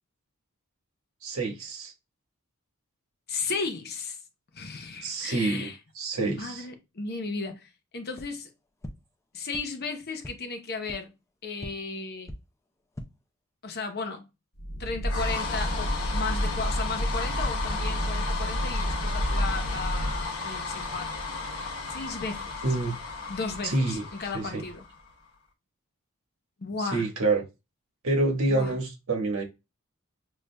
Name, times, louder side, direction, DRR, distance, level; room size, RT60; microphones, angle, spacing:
voice 1, 1.2-1.9 5.0-5.7 6.0-6.6 22.6-22.9 23.6-24.0 24.3-24.6 26.8-27.4 28.0-29.4, right 2 dB, 85° right, 1.3 m, -27 dB
voice 2, 3.3-4.2 4.5-5.8 6.2-8.5 9.3-11.1 11.4-12.3 13.6-14.2 14.8-21.1 21.9-22.5 23.3-24.8 26.6-27.1 28.5-28.7, left 4 dB, 50° left, 0.8 m, -35 dB
sound 1, 8.1-8.2 8.8-8.9 9.5-9.6 10.2-10.3 10.9-11.0 11.6-11.7 12.2-12.3 12.8-13.0, equal, 15° left, 0.5 m, -39 dB
sound 2, 14.6-25.1, left 1 dB, 75° left, 1.0 m, -30 dB
6.3 x 2.4 x 2.2 m
head